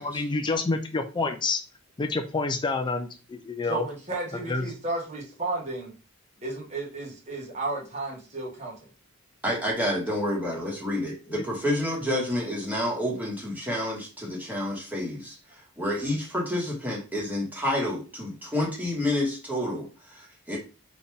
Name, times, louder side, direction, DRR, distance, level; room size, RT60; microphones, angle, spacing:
voice 1, 0.0-1.6 2.0-3.8 4.5-4.7 11.3-11.4, left 3 dB, 20° left, 5 dB, 0.4 m, -28 dB
voice 2, 3.7-5.9 6.4-8.7, right 2 dB, 30° right, -3 dB, 1.4 m, -33 dB
voice 3, 9.4-20.6, left 1 dB, 10° right, -3 dB, 1.6 m, -29 dB
4.2 x 3.4 x 3.4 m, 0.33 s
head